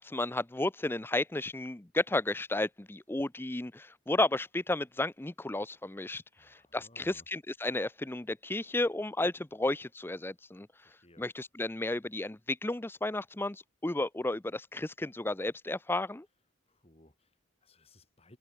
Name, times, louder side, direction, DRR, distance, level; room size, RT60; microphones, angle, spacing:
voice 1, 0.0-6.2 6.7-10.7 11.2-16.3, left 2 dB, 10° left, 0.5 m, -33 dB
voice 2, 6.4-7.3 10.8-11.3 16.7-18.4, left 1 dB, 30° left, 3.9 m, -61 dB
head